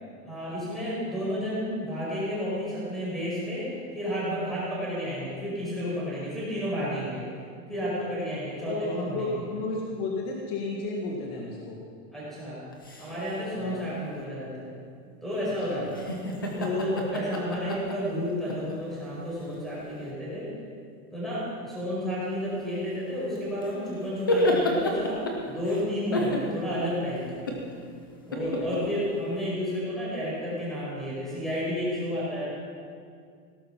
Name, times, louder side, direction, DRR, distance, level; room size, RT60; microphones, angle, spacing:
voice 1, 0.2-7.2 7.7-9.4 12.1-12.6 13.0-14.7 15.2-16.0 16.6-20.5 21.1-27.5 28.2-32.5, equal, ahead, -8 dB, 5.2 m, -31 dB
voice 2, 8.7-11.8 13.6-13.9 15.7-15.9 28.4-28.7, left 2 dB, 35° left, -2 dB, 1.9 m, -33 dB
sound 1, 12.7-13.4 15.9-18.7 19.4-19.5 23.3-25.8 26.1-26.8 27.2-27.7 28.3-29.0, left 1 dB, 15° left, 0.3 m, -29 dB
17.0 x 11.5 x 6.0 m, 2.2 s
supercardioid pair, 170°, 49 cm